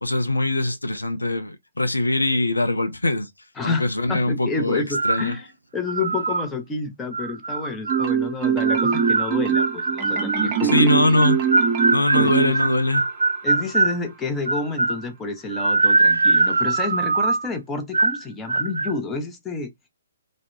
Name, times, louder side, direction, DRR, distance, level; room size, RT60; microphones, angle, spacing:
voice 1, 0.0-3.3 3.6-5.4 10.6-11.4 11.9-13.1, left 2 dB, 85° left, 0.5 m, -22 dB
voice 2, 3.6-5.5 5.7-11.2 12.1-12.7 13.4-19.7, left 3 dB, 10° left, 0.5 m, -29 dB
sound 1, 4.9-5.3 5.9-6.5 7.1-8.1 8.7-10.6 11.2-14.0 14.5-15.0 15.5-17.5 17.9-18.2 18.5-18.9, right 3 dB, 70° right, 0.3 m, -22 dB
Marimba xylophone, 7.9-13.0, right 7 dB, 30° right, 0.7 m, -23 dB
2.3 x 2.0 x 2.9 m
figure-of-eight pair, 130°, 0 cm